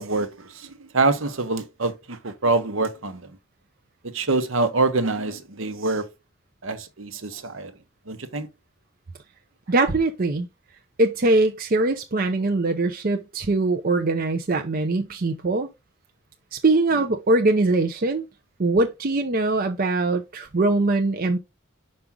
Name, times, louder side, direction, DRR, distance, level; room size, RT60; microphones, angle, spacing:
voice 1, 0.0-3.3 4.1-6.1 6.6-7.7 8.1-8.5, right 3 dB, 70° right, 1.0 m, -25 dB
voice 2, 9.7-10.5 11.0-15.7 16.5-18.2 18.6-21.4, right 2 dB, 45° right, 0.6 m, -22 dB
5.9 x 5.3 x 3.7 m
head